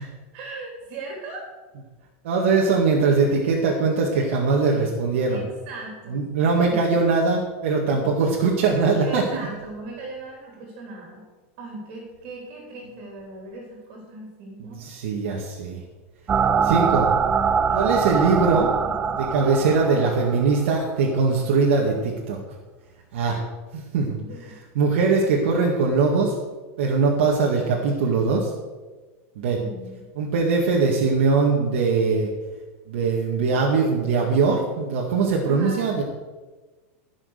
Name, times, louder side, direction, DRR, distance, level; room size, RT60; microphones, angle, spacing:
voice 1, 0.3-1.5 5.3-6.2 9.0-11.2 11.6-14.8 17.7-17.9 18.8-19.2 24.0-24.5 29.5-30.0 35.4-36.0, right 2 dB, 40° right, 0 dB, 3.7 m, -39 dB
voice 2, 2.2-5.4 6.1-9.5 14.8-15.8 16.6-17.1 17.7-18.7 19.2-22.4 23.1-23.4 23.7-24.2 24.4-26.3 26.8-28.5 29.4-29.6 30.2-32.3 32.9-36.0, right 4 dB, 60° right, -1 dB, 1.9 m, -21 dB
sound 1, 16.3-20.9, right 6 dB, 15° right, 0.4 m, -23 dB
15.5 x 6.4 x 6.6 m, 1.3 s
supercardioid pair, 170°, 7 cm